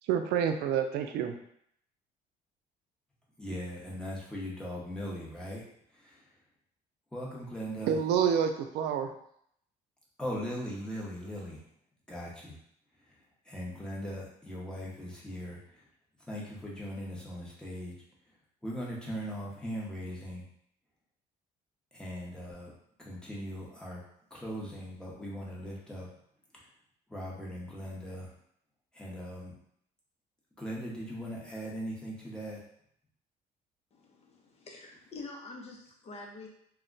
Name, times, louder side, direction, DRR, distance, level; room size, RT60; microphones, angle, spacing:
voice 1, 0.1-1.4 7.9-9.1, right 8 dB, 80° right, 7 dB, 0.4 m, -28 dB
voice 2, 3.4-5.6 5.9-6.4 7.1-8.0 10.2-11.7 12.1-12.6 13.0-15.9 16.2-17.9 18.3-18.4 18.6-20.4 21.9-22.7 23.0-24.0 24.3-26.1 26.5-26.7 27.1-28.3 28.9-29.6 30.6-32.6, equal, 5° left, -5 dB, 0.9 m, -39 dB
voice 3, 33.9-36.5, left 3 dB, 40° left, 0 dB, 0.7 m, -46 dB
2.3 x 2.1 x 3.8 m, 0.70 s
cardioid pair, 110°, 17 cm